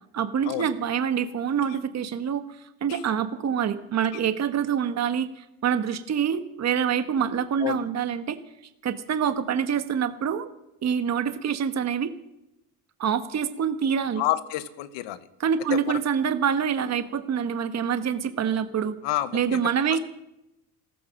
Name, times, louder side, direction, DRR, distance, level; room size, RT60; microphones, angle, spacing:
voice 1, 0.1-2.4 2.8-8.4 8.8-10.5 10.8-12.1 13.0-14.2 15.4-19.0 19.3-20.0, right 7 dB, 35° right, 10 dB, 1.2 m, -26 dB
voice 2, 14.2-15.3 15.7-16.0 19.0-19.6 19.9-20.0, left 14 dB, 75° left, 14 dB, 1.2 m, -29 dB
14.5 x 13.5 x 6.5 m, 0.89 s
supercardioid pair, 95°, 45 cm